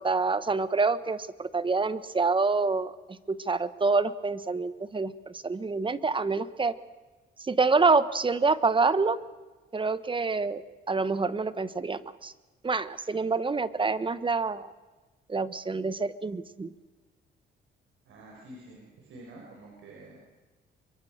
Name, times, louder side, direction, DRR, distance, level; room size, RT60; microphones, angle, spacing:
voice 1, 0.0-2.9 3.3-6.7 7.4-9.2 9.7-10.6 10.9-12.3 12.6-14.7 15.3-16.7, right 4 dB, 25° right, 15 dB, 1.2 m, -27 dB
voice 2, 18.1-20.2, right 1 dB, 80° right, -2 dB, 5.9 m, -48 dB
25.5 x 23.0 x 6.6 m, 1.2 s
cardioid pair, 90°, 20 cm